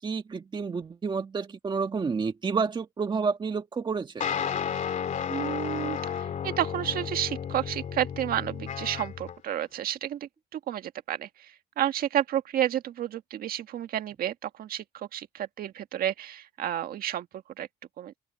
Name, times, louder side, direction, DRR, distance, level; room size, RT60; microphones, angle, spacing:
voice 1, 0.0-4.2, right 5 dB, 25° right, 1.5 m, -30 dB
sound 1, 4.2-9.4, left 8 dB, 45° left, 3.0 m, -32 dB
voice 2, 5.3-17.7 18.0-18.1, right 11 dB, 60° right, 1.6 m, -31 dB
cardioid pair, 110°, 17 cm